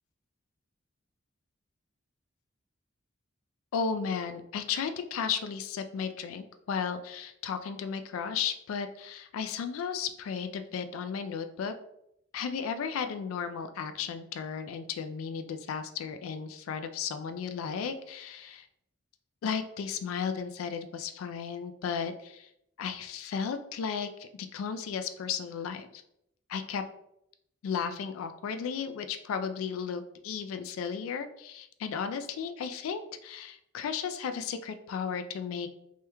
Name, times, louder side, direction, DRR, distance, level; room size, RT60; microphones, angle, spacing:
voice 1, 3.7-11.7 12.3-18.7 19.4-22.5 22.8-26.0 26.5-26.8 27.6-35.7, left 6 dB, 90° left, 10 dB, 0.3 m, -34 dB
3.4 x 2.1 x 2.9 m, 0.78 s
head